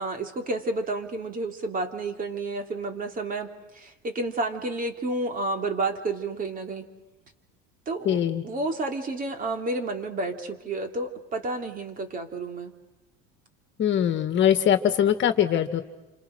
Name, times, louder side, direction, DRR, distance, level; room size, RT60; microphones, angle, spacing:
voice 1, 0.0-6.9 7.9-12.7, right 2 dB, 25° right, 5 dB, 3.1 m, -31 dB
voice 2, 8.1-8.4 13.8-15.8, left 10 dB, 40° left, 8 dB, 2.0 m, -22 dB
29.0 x 26.5 x 6.4 m, 1.0 s
cardioid pair, 140°, 31 cm